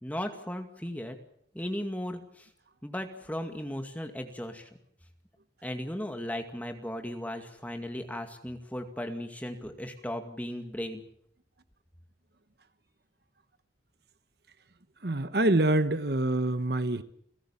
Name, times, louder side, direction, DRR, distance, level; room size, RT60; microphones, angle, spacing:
voice 1, 0.0-1.2 1.5-2.5 2.8-4.7 5.6-11.0, equal, 10° left, 5 dB, 2.2 m, -36 dB
voice 2, 15.0-17.0, right 2 dB, 60° right, 12 dB, 1.1 m, -26 dB
30.0 x 16.0 x 7.2 m, 0.67 s
head